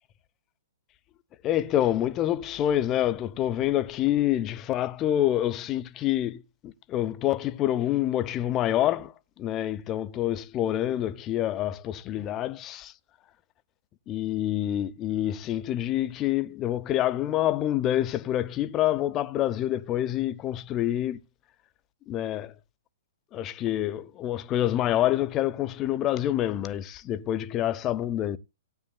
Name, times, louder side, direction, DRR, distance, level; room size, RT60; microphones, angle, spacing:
voice 1, 1.4-9.1 9.4-12.9 14.1-21.2 22.1-22.5 23.3-28.4, left 12 dB, 30° left, 0.6 m, -27 dB
18.0 x 8.9 x 2.2 m
hypercardioid pair, 120°, 0 cm